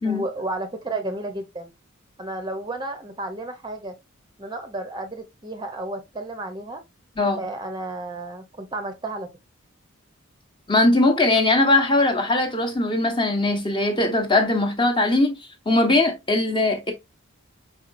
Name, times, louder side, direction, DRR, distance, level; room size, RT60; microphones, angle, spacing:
voice 1, 0.0-1.7 2.2-3.9 4.4-6.8 7.4-9.3, right 2 dB, 20° right, 0.7 m, -32 dB
voice 2, 10.7-15.3 15.7-16.9, left 2 dB, 25° left, 0.9 m, -20 dB
4.6 x 4.2 x 2.6 m
head